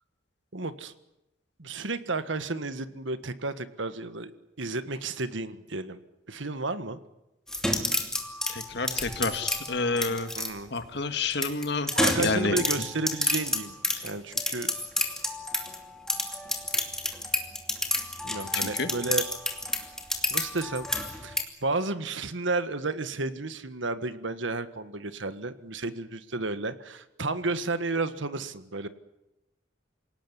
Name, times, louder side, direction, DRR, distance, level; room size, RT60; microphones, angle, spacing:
voice 1, 0.5-0.9 1.6-4.3 4.6-6.0 6.3-7.0 10.4-10.7 11.9-13.8 14.0-14.7 18.2-19.2 20.3-28.9, right 3 dB, 70° right, 12 dB, 1.6 m, -32 dB
sound 1, 7.5-10.5 11.3-15.8 16.1-21.4, left 1 dB, 5° left, 2.6 m, -29 dB
voice 2, 8.5-10.3 10.7-11.9 12.2-12.6 18.5-18.9, left 3 dB, 60° left, 8 dB, 2.0 m, -29 dB
27.5 x 18.0 x 9.9 m, 0.93 s
head